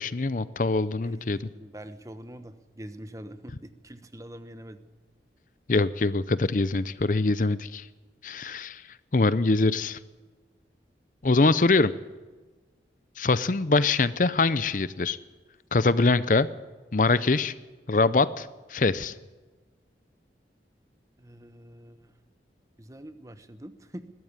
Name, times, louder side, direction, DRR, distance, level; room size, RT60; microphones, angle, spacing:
voice 1, 0.0-1.5 5.7-7.9 8.2-8.8 9.1-10.0 11.2-11.9 13.2-15.2 15.7-16.5 16.9-17.5 17.9-19.1, left 3 dB, 45° left, 16 dB, 0.6 m, -23 dB
voice 2, 1.0-4.8 21.2-22.1 22.8-24.1, right 1 dB, 20° right, 11 dB, 1.1 m, -44 dB
21.0 x 14.5 x 9.7 m, 1.3 s
head